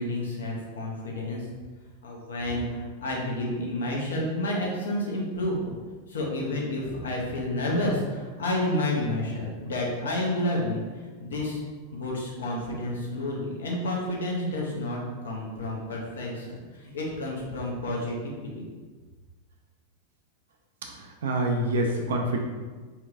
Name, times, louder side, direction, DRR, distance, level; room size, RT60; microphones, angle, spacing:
voice 1, 0.0-1.5 2.0-5.8 6.1-11.6 11.9-18.6, left 1 dB, 65° left, -2 dB, 0.7 m, -30 dB
voice 2, 20.8-22.4, right 1 dB, 60° right, 1 dB, 0.4 m, -27 dB
4.2 x 2.3 x 2.4 m, 1.4 s
figure-of-eight pair, 90°, 0 cm